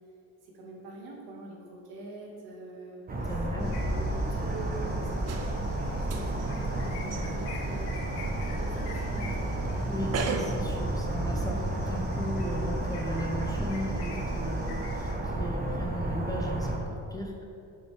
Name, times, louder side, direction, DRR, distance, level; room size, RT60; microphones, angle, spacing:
voice 1, 0.4-5.6 6.1-9.5 11.4-11.7 14.5-14.8, right 2 dB, 70° right, -2 dB, 1.7 m, -44 dB
sound 1, 3.1-16.8, right 1 dB, 25° right, 0.9 m, -31 dB
voice 2, 3.2-3.7 9.9-11.6 11.9-17.4, equal, 10° left, -1 dB, 0.7 m, -36 dB
sound 2, 3.6-15.1, left 3 dB, 75° left, 1.6 m, -48 dB
sound 3, 5.3-10.6, right 5 dB, 40° right, 0.6 m, -39 dB
7.9 x 5.6 x 3.3 m, 2.6 s
cardioid pair, 105°, 39 cm